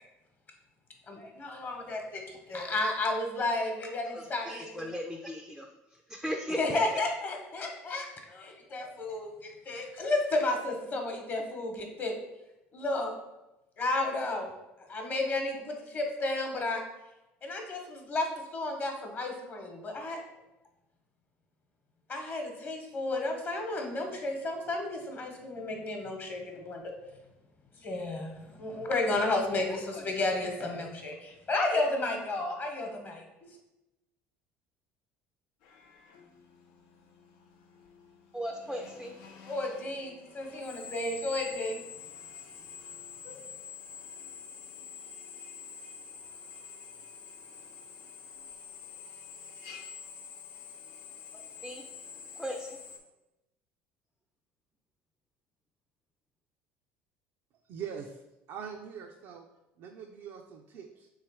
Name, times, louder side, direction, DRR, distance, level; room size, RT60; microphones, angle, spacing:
voice 1, 1.1-4.8 6.6-12.1 12.7-13.1 13.8-14.5 14.9-16.8 17.4-18.3 18.5-20.2 22.1-26.9 27.8-33.5 39.5-41.8 43.2-43.4, left 2 dB, 35° left, 2 dB, 1.0 m, -32 dB
voice 2, 4.1-5.7 6.1-6.8 38.3-39.1 51.6-51.8 52.4-52.8, equal, ahead, 3 dB, 0.4 m, -37 dB
Drill, 35.6-53.0, left 6 dB, 75° left, 0.6 m, -47 dB
voice 3, 57.6-58.2 58.5-59.5 59.8-61.1, right 7 dB, 60° right, 2 dB, 0.4 m, -42 dB
3.3 x 3.2 x 4.6 m, 0.97 s
supercardioid pair, 95°, 5 cm